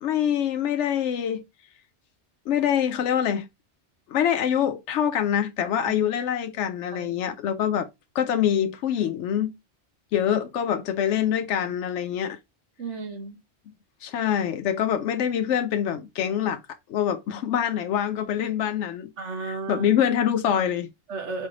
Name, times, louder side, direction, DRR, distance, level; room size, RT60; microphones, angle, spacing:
voice 1, 0.0-1.4 2.5-3.5 4.1-7.9 8.1-9.5 10.1-12.4 14.0-16.6 16.9-19.1 19.4-20.9, left 9 dB, 85° left, 0.9 m, -25 dB
voice 2, 12.8-13.4 19.2-19.9 21.1-21.5, right 4 dB, 90° right, 1.5 m, -34 dB
4.3 x 3.2 x 3.7 m
omnidirectional pair, 1.2 m